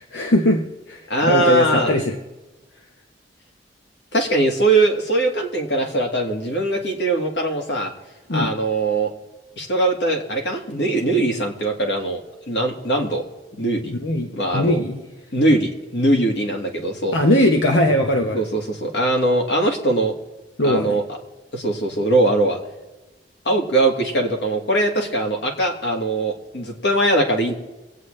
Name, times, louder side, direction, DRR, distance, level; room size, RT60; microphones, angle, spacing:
voice 1, 0.0-2.2 8.3-8.5 14.0-15.0 17.1-18.4 20.6-21.0, left 1 dB, 90° left, 2 dB, 1.1 m, -20 dB
voice 2, 1.1-1.9 4.1-7.9 8.3-9.1 9.6-12.2 12.5-13.2 13.5-13.9 14.3-14.8 15.3-17.2 18.3-20.1 20.6-21.0 21.5-22.6 23.5-27.5, right 2 dB, 70° left, 2 dB, 2.1 m, -21 dB
24.5 x 8.9 x 3.3 m, 1.1 s
head